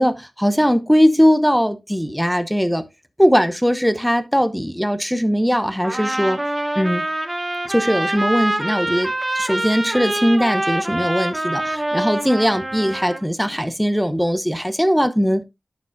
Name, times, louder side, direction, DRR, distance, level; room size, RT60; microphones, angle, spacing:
voice 1, 0.0-2.8 3.2-6.4 6.7-7.1 7.6-15.4, equal, ahead, 0.9 m, -19 dB
Trumpet, 5.8-13.2, right 1 dB, 20° right, 1.6 m, -25 dB
11.5 x 5.4 x 2.6 m
wide cardioid pair, 80°, 0 cm